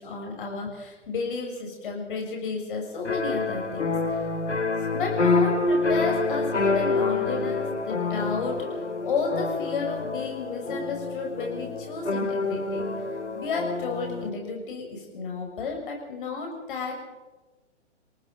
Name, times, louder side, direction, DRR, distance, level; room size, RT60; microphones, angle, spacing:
voice 1, 0.0-4.2 4.9-12.8 13.4-17.0, left 4 dB, 45° left, 1 dB, 6.9 m, -32 dB
sound 1, 3.0-14.3, left 3 dB, 75° left, 2.2 m, -27 dB
29.0 x 18.5 x 5.4 m, 1.1 s
figure-of-eight pair, 120°, 35 cm